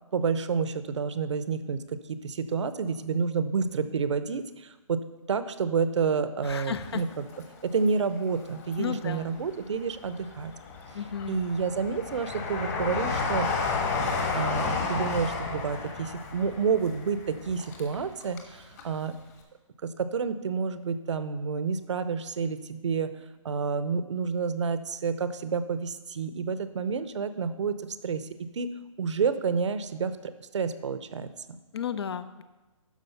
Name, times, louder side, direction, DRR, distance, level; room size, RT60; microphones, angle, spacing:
voice 1, 0.1-7.3 7.6-10.5 11.3-13.6 14.3-19.1 19.8-23.1 23.4-28.7 29.0-31.3, right 5 dB, 60° right, 12 dB, 0.7 m, -29 dB
voice 2, 6.4-7.0 8.8-9.3 10.9-11.4 31.7-32.4, left 8 dB, 50° left, 13 dB, 0.6 m, -33 dB
Train, 6.6-7.8 8.3-9.2 9.8-18.5 18.8-18.9, left 4 dB, 30° left, 1.3 m, -32 dB
12.0 x 5.0 x 5.6 m, 1.1 s
hypercardioid pair, 155°, 17 cm